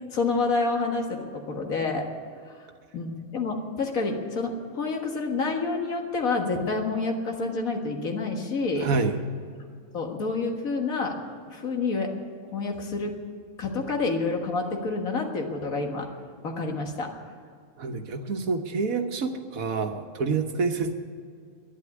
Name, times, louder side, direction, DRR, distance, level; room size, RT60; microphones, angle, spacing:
voice 1, 0.1-2.1 2.9-8.9 9.9-11.2 11.5-12.1 12.5-13.1 13.6-16.1 16.4-17.1, left 3 dB, 85° left, 3 dB, 2.1 m, -28 dB
voice 2, 8.8-9.2 17.8-20.9, right 4 dB, 90° right, 6 dB, 1.6 m, -27 dB
11.5 x 10.5 x 9.6 m, 2.2 s
omnidirectional pair, 1.4 m